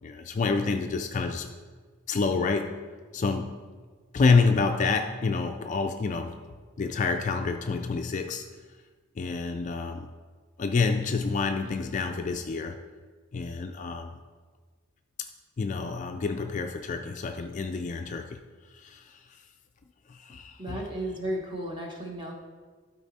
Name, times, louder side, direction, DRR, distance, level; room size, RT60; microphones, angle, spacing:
voice 1, 0.0-1.5 2.1-2.8 3.1-3.6 4.1-6.4 6.8-8.5 9.2-10.1 10.6-12.8 13.3-14.2 15.6-18.4 18.7-19.4 20.1-20.8, left 4 dB, 35° left, 5 dB, 0.3 m, -28 dB
voice 2, 20.6-22.3, right 1 dB, 20° right, -1 dB, 1.2 m, -34 dB
12.0 x 4.2 x 4.1 m, 1.5 s
head